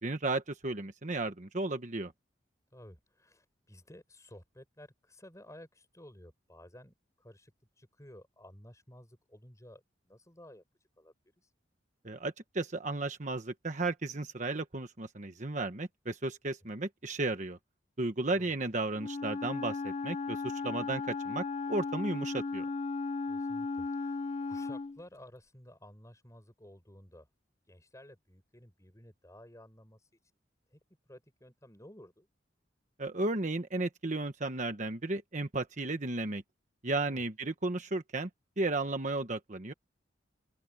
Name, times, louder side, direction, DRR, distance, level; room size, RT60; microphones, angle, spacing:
voice 1, 0.0-2.1 12.0-17.6 18.0-21.4 21.7-22.7 33.0-36.4 36.8-38.3 38.6-39.7, right 2 dB, 40° right, 1.2 m, -34 dB
voice 2, 2.7-7.5 7.8-10.6 11.0-11.1 18.2-18.5 23.3-27.3 27.7-30.0 30.7-30.8 31.1-32.3 37.0-37.2, left 1 dB, 15° left, 7.1 m, -54 dB
Wind instrument woodwind instrument, 19.0-25.0, left 4 dB, 30° left, 0.4 m, -36 dB
open air
head